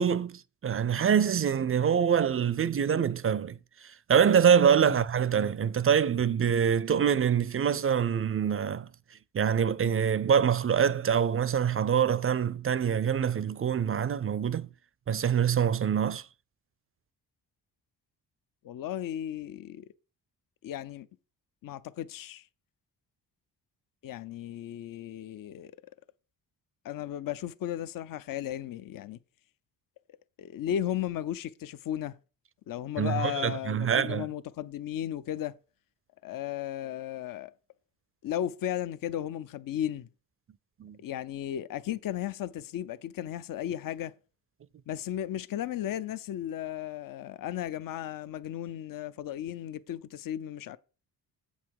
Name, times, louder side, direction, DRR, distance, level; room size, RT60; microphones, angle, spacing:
voice 1, 0.0-3.6 4.1-8.9 9.3-14.7 15.1-16.2 33.0-34.3 40.8-41.0, right 8 dB, 35° right, 0.5 m, -25 dB
voice 2, 18.6-19.9 20.6-21.1 21.6-22.4 24.0-25.7 26.8-29.2 30.4-32.1 32.7-35.6 36.2-37.5 38.2-40.1 41.0-44.1 44.9-50.8, left 11 dB, 55° left, 0.6 m, -35 dB
7.7 x 5.5 x 4.7 m
cardioid pair, 75°, 39 cm